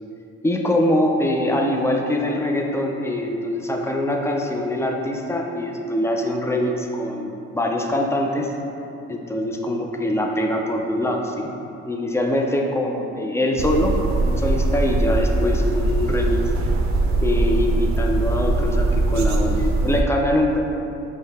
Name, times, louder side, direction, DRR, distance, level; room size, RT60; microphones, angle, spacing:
voice 1, 0.4-8.5 9.1-11.5 11.8-16.4 17.2-20.6, left 1 dB, 10° left, 1 dB, 0.4 m, -23 dB
sound 1, 13.6-20.0, right 2 dB, 65° right, 0.5 m, -21 dB
5.3 x 2.2 x 3.4 m, 2.8 s
cardioid pair, 90°, 30 cm